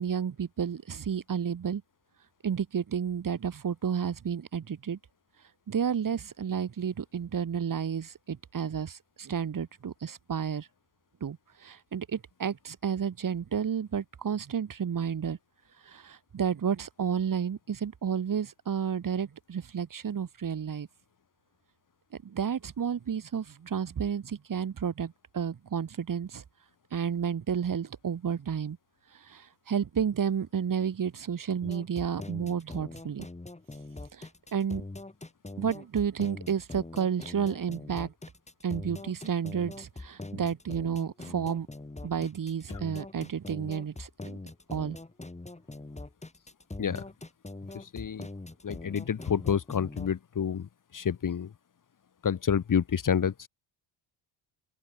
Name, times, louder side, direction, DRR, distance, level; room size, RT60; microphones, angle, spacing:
voice 1, 0.0-1.8 2.4-5.0 5.7-10.7 11.2-15.4 15.8-20.9 22.2-26.4 26.9-28.8 29.1-33.3 34.1-34.8 35.6-38.1 38.6-41.7 42.0-44.4 44.7-45.0, right 7 dB, 40° right, 2.5 m, -31 dB
sound 1, 31.6-50.1, left 2 dB, 15° left, 5.2 m, -42 dB
voice 2, 47.7-48.3 48.6-51.5 52.2-53.5, left 7 dB, 40° left, 2.0 m, -29 dB
open air
cardioid pair, 85°, 49 cm